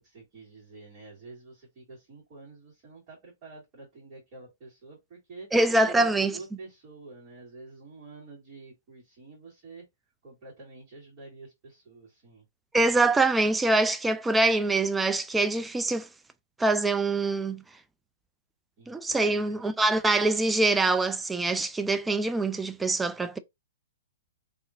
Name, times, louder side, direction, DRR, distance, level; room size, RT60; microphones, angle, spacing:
voice 1, 0.0-5.5 5.8-9.8 10.2-12.4 18.8-19.6, right 3 dB, 35° right, 2.3 m, -48 dB
voice 2, 5.5-6.3 12.7-16.1 16.6-17.6 18.9-23.4, right 2 dB, 10° right, 0.3 m, -24 dB
3.5 x 2.8 x 2.5 m
hypercardioid pair, 120°, 0 cm